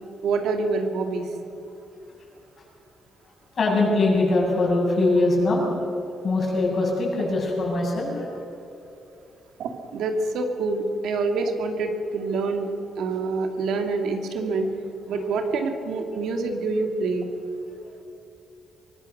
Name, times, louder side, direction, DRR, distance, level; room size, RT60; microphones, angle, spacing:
voice 1, 0.2-1.2 9.6-12.7 13.0-14.7 15.1-17.3, right 3 dB, 80° right, 4 dB, 2.4 m, -26 dB
voice 2, 3.6-5.6 6.2-8.3, left 2 dB, 40° left, -2 dB, 7.4 m, -22 dB
24.0 x 19.0 x 6.6 m, 2.7 s
cardioid pair, 130°, 0 cm